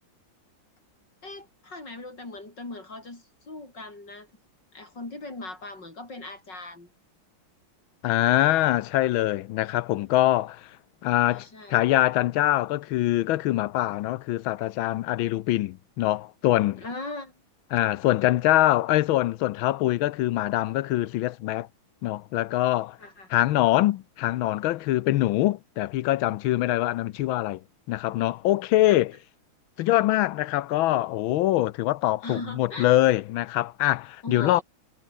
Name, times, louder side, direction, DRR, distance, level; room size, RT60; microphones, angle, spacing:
voice 1, 1.2-4.3 4.7-6.9 11.3-11.8 16.8-17.3 23.0-23.3 28.9-29.0 32.2-32.9 34.2-34.6, left 2 dB, 60° left, 6.6 m, -39 dB
voice 2, 8.0-10.6 11.0-16.8 17.7-21.7 22.0-23.0 23.3-27.6 27.9-29.1 29.8-34.6, left 15 dB, 85° left, 1.5 m, -24 dB
omnidirectional pair, 2.2 m